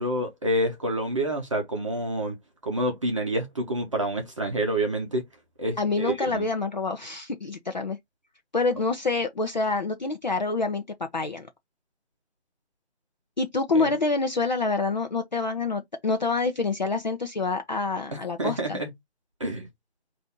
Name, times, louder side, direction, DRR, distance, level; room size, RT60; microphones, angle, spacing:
voice 1, 0.0-2.3 2.6-5.2 5.6-6.4 13.7-13.9 18.1-18.9 19.4-19.7, right 1 dB, 30° right, 0.8 m, -28 dB
voice 2, 5.8-8.0 8.5-10.8 11.1-11.5 13.4-18.8, left 3 dB, 40° left, 0.6 m, -27 dB
4.3 x 2.6 x 3.5 m
figure-of-eight pair, 160°, 34 cm